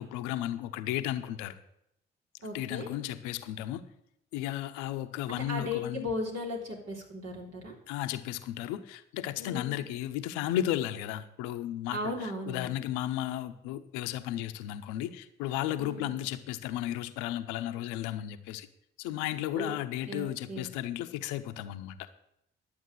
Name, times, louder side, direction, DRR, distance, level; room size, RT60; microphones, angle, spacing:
voice 1, 0.0-1.5 2.5-3.8 4.3-6.1 7.9-18.7 19.0-22.0, left 13 dB, 80° left, 10 dB, 0.8 m, -34 dB
voice 2, 2.4-2.9 5.3-7.8 9.4-9.8 11.9-12.7 15.8-16.2 19.5-19.8 20.1-20.7, left 2 dB, 60° right, 0 dB, 3.6 m, -37 dB
11.5 x 7.8 x 7.6 m, 0.78 s
hypercardioid pair, 40°, 29 cm